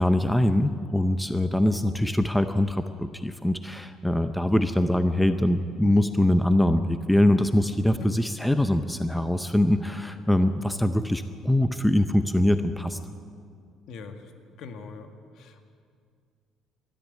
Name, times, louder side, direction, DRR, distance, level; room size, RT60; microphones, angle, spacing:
voice 1, 0.0-13.0, left 1 dB, 5° left, 9 dB, 0.6 m, -23 dB
voice 2, 13.9-14.2 14.6-15.1 15.4-15.6, left 5 dB, 60° left, 6 dB, 1.9 m, -40 dB
20.5 x 13.5 x 9.4 m, 2.2 s
cardioid pair, 150°, 0 cm